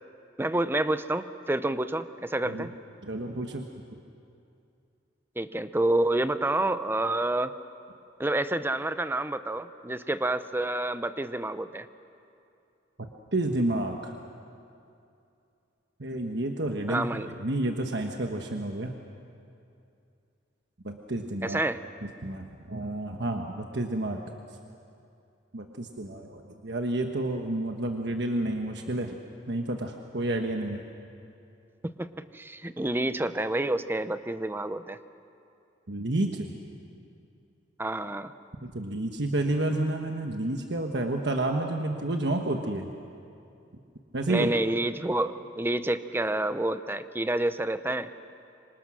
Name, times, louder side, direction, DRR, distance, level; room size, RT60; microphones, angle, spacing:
voice 1, 0.4-2.7 5.4-7.5 8.2-11.9 16.9-17.3 21.4-21.8 31.8-35.0 37.8-38.3 44.3-48.1, right 1 dB, 10° right, 12 dB, 0.6 m, -28 dB
voice 2, 3.0-3.6 13.0-14.1 16.0-17.1 17.4-18.9 20.8-21.6 22.2-24.2 25.5-29.1 29.5-30.8 35.9-36.5 38.6-42.9 44.1-44.5, right 2 dB, 65° right, 3 dB, 1.3 m, -30 dB
26.0 x 25.5 x 6.2 m, 2.6 s
head